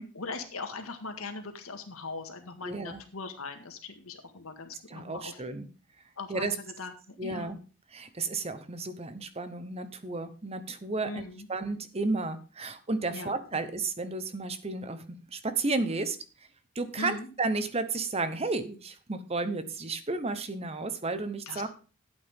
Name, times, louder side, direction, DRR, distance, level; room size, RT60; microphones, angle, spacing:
voice 1, 0.1-5.4 6.2-7.5 11.0-11.5 13.1-13.6 17.0-17.3 21.5-21.7, left 3 dB, 85° left, 6 dB, 1.8 m, -40 dB
voice 2, 2.6-3.0 4.9-5.7 6.3-6.5 7.2-7.6 7.9-11.2 11.5-15.0 15.3-16.2 16.7-21.7, right 3 dB, 30° right, 11 dB, 0.9 m, -32 dB
12.0 x 8.4 x 3.6 m, 0.37 s
head